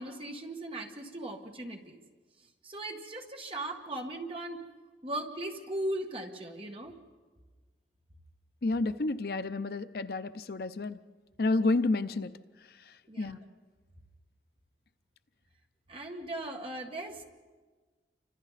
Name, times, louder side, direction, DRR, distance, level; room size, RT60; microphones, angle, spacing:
voice 1, 0.0-2.0 2.6-4.6 5.0-7.0 13.1-13.5 15.9-17.2, right 1 dB, 30° right, 2 dB, 1.7 m, -38 dB
voice 2, 8.6-11.0 11.4-12.3 12.9-13.4, left 2 dB, 55° left, 12 dB, 0.5 m, -30 dB
29.0 x 25.5 x 4.1 m, 1.4 s
head